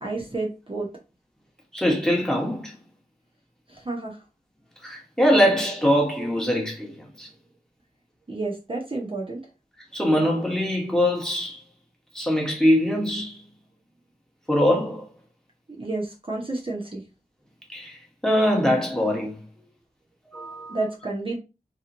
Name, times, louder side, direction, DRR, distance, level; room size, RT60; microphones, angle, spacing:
voice 1, 0.0-0.9 3.7-4.2 8.3-9.4 15.8-17.1 20.3-21.4, right 2 dB, 30° right, 0.8 m, -30 dB
voice 2, 1.7-2.7 4.8-7.3 9.9-11.6 12.1-13.4 14.5-15.1 17.7-18.0 18.2-19.3 20.3-20.8, equal, 5° left, 1.0 m, -22 dB
2.9 x 2.4 x 2.5 m
wide cardioid pair, 60°, 17 cm